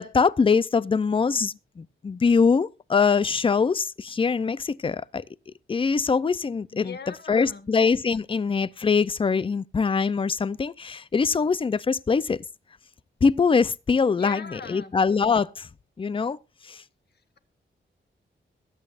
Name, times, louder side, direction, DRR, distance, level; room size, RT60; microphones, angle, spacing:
voice 1, 0.0-5.2 5.7-6.9 7.3-12.4 13.2-15.7 16.0-16.4 16.7-16.8, left 5 dB, 25° left, 0.5 m, -23 dB
voice 2, 6.7-7.7 14.2-14.9, left 5 dB, 55° left, 1.8 m, -39 dB
21.5 x 8.9 x 2.5 m
wide cardioid pair, 135°, 20 cm